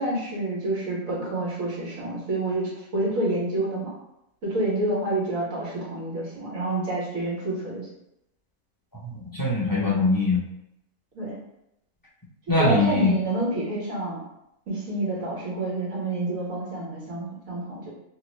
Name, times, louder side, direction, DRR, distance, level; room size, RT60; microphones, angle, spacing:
voice 1, 0.0-3.9 4.4-7.9 11.1-11.4 12.5-14.2 14.7-17.9, right 2 dB, 70° right, -6 dB, 1.7 m, -28 dB
voice 2, 9.0-10.4 12.5-13.1, left 2 dB, 25° left, -7 dB, 0.5 m, -22 dB
3.1 x 2.9 x 3.0 m, 0.84 s
omnidirectional pair, 1.5 m